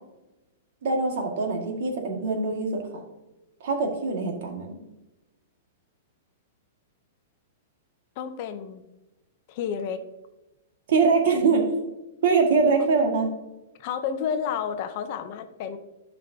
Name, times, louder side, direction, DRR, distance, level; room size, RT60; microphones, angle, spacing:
voice 1, 0.8-3.0 3.6-4.8 10.9-11.6 12.2-13.3, right 4 dB, 60° right, 2 dB, 1.9 m, -23 dB
voice 2, 8.2-8.8 9.5-10.0 13.8-15.8, left 7 dB, 40° left, 9 dB, 0.7 m, -30 dB
11.0 x 5.4 x 2.8 m, 1.0 s
supercardioid pair, 165°, 0 cm